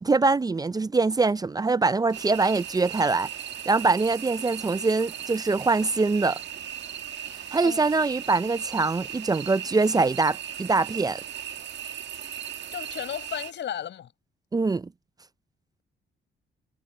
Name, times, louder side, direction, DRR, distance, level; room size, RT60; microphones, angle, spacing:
voice 1, 0.0-3.3 3.7-6.4 7.5-11.2 14.5-14.9, right 3 dB, 20° right, 0.5 m, -23 dB
sound 1, 2.1-13.5, right 10 dB, 60° right, 1.7 m, -37 dB
voice 2, 12.7-14.1, left 10 dB, 65° left, 5.9 m, -34 dB
cardioid pair, 90°, 20 cm